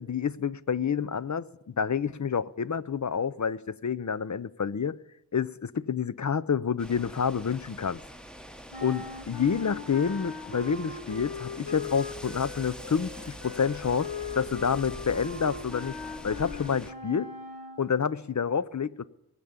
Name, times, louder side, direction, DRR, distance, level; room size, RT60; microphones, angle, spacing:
voice 1, 0.0-5.0 5.3-8.0 8.8-16.0 16.2-17.3 17.8-19.0, left 6 dB, 45° left, 0.5 m, -28 dB
sound 1, 6.8-16.9, equal, ahead, 0.9 m, -44 dB
sound 2, 8.7-17.9, left 5 dB, 80° left, 1.9 m, -40 dB
19.0 x 6.9 x 8.7 m
wide cardioid pair, 65°, 42 cm